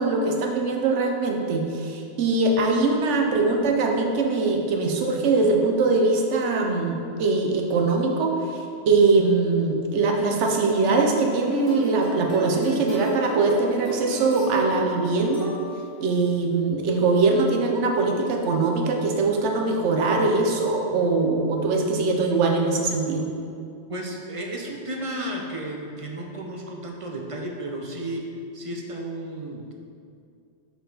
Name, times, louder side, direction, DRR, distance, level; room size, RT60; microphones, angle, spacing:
voice 1, 0.0-15.5 16.0-23.3, right 3 dB, 80° right, 1 dB, 1.1 m, -22 dB
sound 1, 10.6-16.0, right 1 dB, 45° left, 1.7 m, -34 dB
voice 2, 23.9-29.7, right 1 dB, 45° right, 1 dB, 0.5 m, -33 dB
6.2 x 4.7 x 3.8 m, 2.4 s
omnidirectional pair, 1.2 m